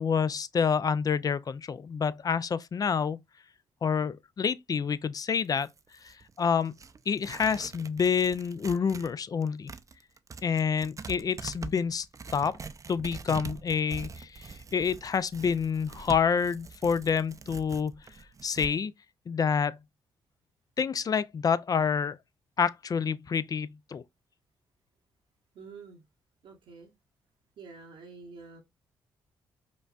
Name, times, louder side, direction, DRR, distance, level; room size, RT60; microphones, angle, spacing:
voice 1, 0.0-3.2 3.8-5.7 6.0-6.7 7.1-9.7 10.4-12.1 12.3-12.6 12.9-18.0 18.4-18.9 19.3-19.8 20.8-22.2 22.6-24.0, left 6 dB, 40° left, 0.4 m, -28 dB
Tearing, 5.4-9.1 9.4-18.7, right 5 dB, 35° right, 0.5 m, -44 dB
voice 2, 25.5-26.0 26.4-26.9 27.6-28.6, right 4 dB, 65° right, 0.8 m, -47 dB
5.0 x 2.2 x 2.4 m
hypercardioid pair, 50°, 10 cm